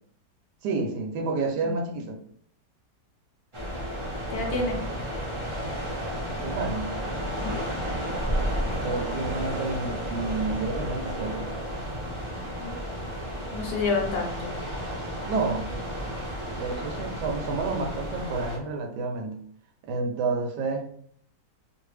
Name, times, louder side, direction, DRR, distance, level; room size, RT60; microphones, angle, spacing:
voice 1, 0.6-2.1 4.5-4.7 6.4-6.9 8.8-11.5 15.2-15.7 16.6-19.4 19.8-20.9, right 3 dB, 80° right, 2 dB, 1.1 m, -30 dB
sound 1, 3.5-18.6, equal, 35° right, 0.5 m, -32 dB
voice 2, 4.3-4.8 7.4-7.7 12.6-12.8 13.5-14.5, left 3 dB, 70° left, 1 dB, 1.0 m, -29 dB
2.6 x 2.5 x 3.1 m, 0.63 s
omnidirectional pair, 1.8 m